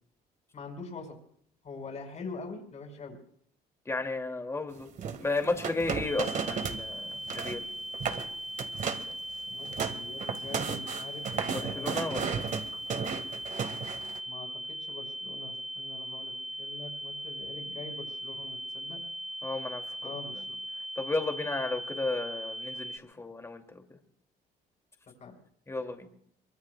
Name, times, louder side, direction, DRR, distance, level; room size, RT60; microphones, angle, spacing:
voice 1, 0.5-1.2 1.6-3.2 9.5-12.3 14.3-16.3 16.6-19.0 20.0-20.5 25.2-25.3, left 3 dB, 40° left, 5.9 m, -44 dB
voice 2, 3.9-4.9 5.2-7.7 11.5-12.6 19.4-19.8 20.4-20.5 21.0-23.8 25.7-26.1, left 3 dB, 15° left, 2.8 m, -33 dB
sound 1, 5.0-6.8 7.1-7.6 7.9-8.3 8.6-9.1 9.5-14.2, right 6 dB, 50° right, 2.0 m, -34 dB
sound 2, 6.1-23.0, right 1 dB, ahead, 0.5 m, -39 dB
24.0 x 23.5 x 2.4 m
cardioid pair, 110°, 17 cm